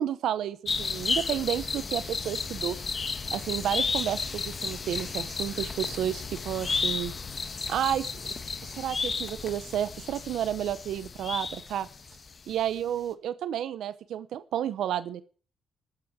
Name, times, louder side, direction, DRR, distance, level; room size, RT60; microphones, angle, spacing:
voice 1, 0.0-2.8 3.3-7.1 7.7-8.2 8.6-11.9 12.5-15.2, right 10 dB, 80° right, 15 dB, 0.8 m, -31 dB
sound 1, 0.7-12.3 12.6-12.7, left 4 dB, 40° left, 1.3 m, -33 dB
12.5 x 7.7 x 7.4 m, 0.41 s
cardioid pair, 75°, 0 cm